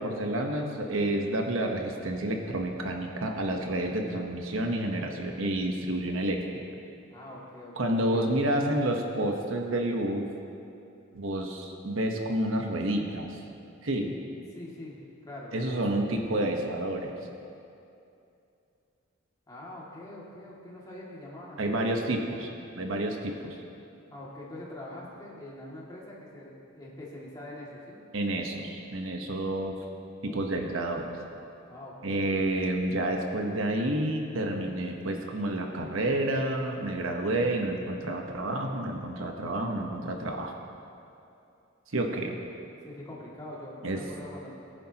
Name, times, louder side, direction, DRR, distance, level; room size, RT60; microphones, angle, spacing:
voice 1, 0.0-6.4 7.8-10.3 11.1-13.4 13.8-14.1 15.5-17.1 21.6-22.5 22.8-23.6 28.1-29.8 30.2-31.2 32.0-40.5 41.9-42.3 43.8-44.0, right 1 dB, 80° right, 2 dB, 1.1 m, -29 dB
voice 2, 7.1-8.6 14.5-15.5 19.5-21.8 24.1-28.0 31.7-32.4 42.8-44.5, left 1 dB, 20° left, -6 dB, 2.2 m, -44 dB
19.5 x 10.0 x 2.9 m, 2.6 s
head